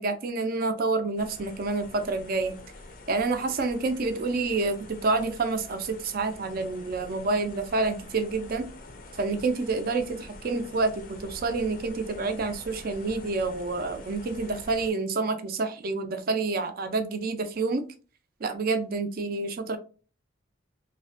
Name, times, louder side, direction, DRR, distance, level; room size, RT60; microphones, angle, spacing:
voice 1, 0.0-2.6 3.1-8.7 9.2-17.8 18.4-19.8, right 3 dB, 45° right, 8 dB, 0.4 m, -28 dB
sound 1, 1.2-14.9, left 2 dB, 45° left, 0.4 m, -46 dB
2.8 x 2.1 x 2.5 m, 0.36 s
head